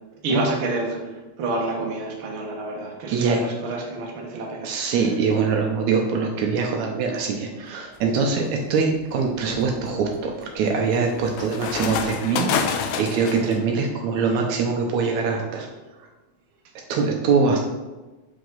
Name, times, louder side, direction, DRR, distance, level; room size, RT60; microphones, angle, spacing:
voice 1, 0.2-4.9, right 2 dB, 55° right, -1 dB, 1.6 m, -28 dB
voice 2, 4.6-15.7 16.9-17.6, right 5 dB, 75° right, 1 dB, 2.0 m, -23 dB
sound 1, 8.0-8.4 8.9-13.6, left 7 dB, 80° left, 1.9 m, -29 dB
7.1 x 4.9 x 3.9 m, 1.2 s
omnidirectional pair, 3.4 m